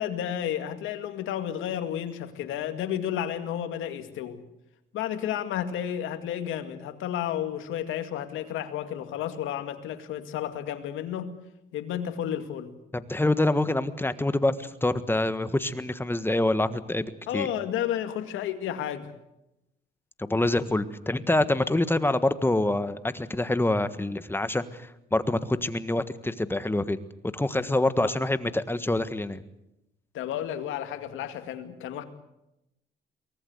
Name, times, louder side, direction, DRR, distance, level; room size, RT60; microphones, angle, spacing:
voice 1, 0.0-4.4 4.9-11.3 11.7-12.7 17.3-19.1 28.0-28.1 30.1-32.0, left 10 dB, 90° left, 8 dB, 2.3 m, -32 dB
voice 2, 12.9-17.1 17.3-17.5 20.2-27.0 27.3-29.4, left 2 dB, 10° left, 12 dB, 1.5 m, -26 dB
23.5 x 19.0 x 8.1 m, 0.88 s
cardioid pair, 90°, 20 cm